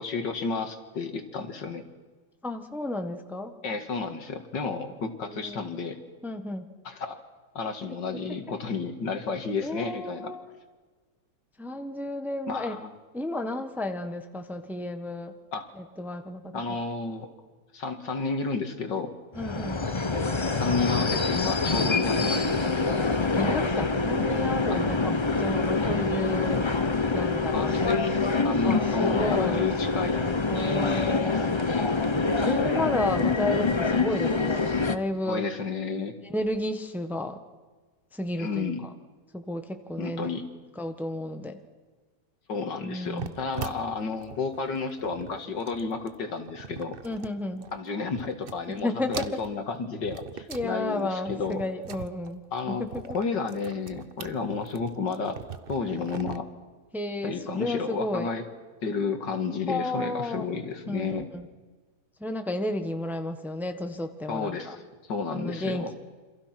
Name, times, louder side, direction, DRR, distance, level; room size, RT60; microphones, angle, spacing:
voice 1, 0.0-1.8 3.6-6.0 6.8-7.2 7.5-10.3 12.5-12.9 15.5-15.7 16.5-17.3 17.7-19.1 20.6-22.7 24.7-24.8 27.5-30.3 31.3-32.0 35.3-36.2 38.4-38.8 40.0-40.4 42.5-47.0 47.7-51.6 52.5-52.8 53.1-55.4 55.7-56.5 57.2-58.4 58.8-61.3 64.3-64.8 65.1-65.9, left 4 dB, 85° left, 6 dB, 2.7 m, -31 dB
voice 2, 2.4-3.5 5.3-5.6 6.2-6.7 9.6-10.4 11.6-12.8 13.1-15.3 15.7-16.6 19.3-19.8 23.3-26.7 27.1-28.1 28.6-29.7 30.5-31.6 32.4-35.4 36.2-37.4 38.1-38.7 39.3-40.3 40.8-41.6 42.8-43.3 47.0-47.6 48.7-49.3 50.5-53.0 56.9-58.3 59.7-60.5 60.9-61.5 62.2-64.8 65.3-65.9, left 1 dB, ahead, 7 dB, 1.3 m, -32 dB
sound 1, 19.3-35.0, left 3 dB, 25° left, 0.7 m, -25 dB
sound 2, 43.0-47.8 48.1-48.8 49.1-50.7 51.0-56.4, right 6 dB, 40° right, 0.9 m, -41 dB
27.5 x 26.0 x 6.0 m, 1.3 s
omnidirectional pair, 1.9 m